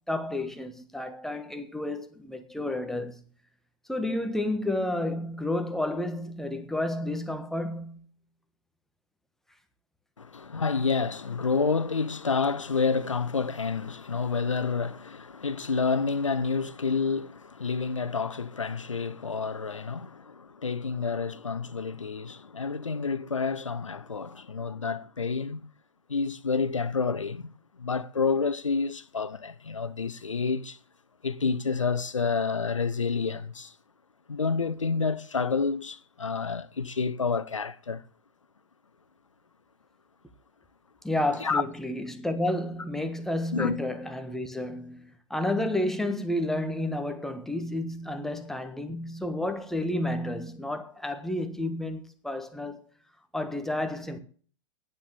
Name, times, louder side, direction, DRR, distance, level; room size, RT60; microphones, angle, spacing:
voice 1, 0.1-3.2 3.9-8.0 41.0-52.8 53.3-54.2, left 1 dB, ahead, 1.5 m, -31 dB
voice 2, 10.2-25.6 26.1-27.5 27.8-30.8 31.2-33.7 34.3-38.0 41.4-41.6 43.5-43.8, left 5 dB, 85° left, 0.9 m, -29 dB
9.9 x 8.6 x 7.4 m
figure-of-eight pair, 105°, 16 cm